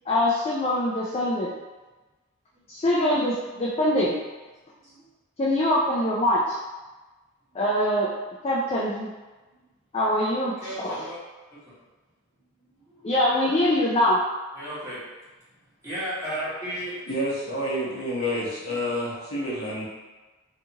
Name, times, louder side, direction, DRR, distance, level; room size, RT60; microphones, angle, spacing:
voice 1, 0.1-1.5 2.7-4.2 5.4-6.6 7.5-8.1 8.4-9.1 9.9-11.0 13.0-14.2, left 1 dB, 30° left, -6 dB, 0.3 m, -23 dB
voice 2, 10.6-11.2 12.9-13.0 14.5-15.0 15.8-17.0 18.7-18.9, equal, 15° right, -10 dB, 1.0 m, -34 dB
voice 3, 17.1-19.9, equal, 80° left, -5 dB, 0.8 m, -29 dB
2.7 x 2.4 x 2.8 m, 1.2 s
head